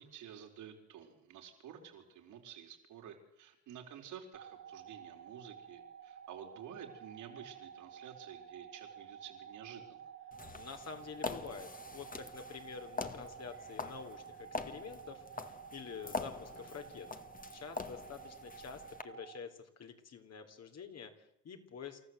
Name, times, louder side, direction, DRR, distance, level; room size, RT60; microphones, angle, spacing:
voice 1, 0.0-10.0, right 8 dB, 85° right, 3 dB, 4.3 m, -51 dB
sound 1, 4.3-19.4, right 8 dB, 60° right, 2.0 m, -52 dB
sound 2, 10.3-19.0, left 4 dB, 30° left, 1.7 m, -44 dB
voice 2, 10.5-17.1 17.5-22.0, left 6 dB, 55° left, 6 dB, 3.5 m, -48 dB
28.0 x 14.0 x 8.0 m, 0.81 s
cardioid pair, 90°, 30 cm